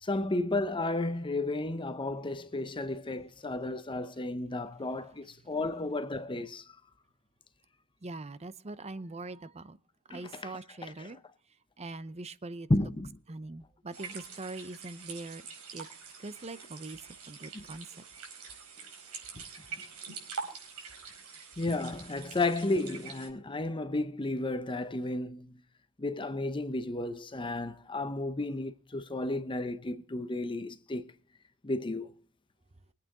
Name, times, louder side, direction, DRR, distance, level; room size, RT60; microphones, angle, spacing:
voice 1, 0.0-6.6 10.1-11.2 12.7-13.2 17.5-17.7 21.6-25.6 26.0-31.1 31.6-32.1, left 2 dB, 20° left, 0.7 m, -33 dB
voice 2, 8.0-9.8 10.1-11.2 11.8-12.7 13.3-15.4 15.7-15.9 16.2-17.0 17.3-17.9, right 2 dB, 30° right, 0.7 m, -42 dB
sound 1, 13.9-23.3, right 5 dB, 85° right, 4.7 m, -45 dB
23.5 x 8.7 x 3.7 m
head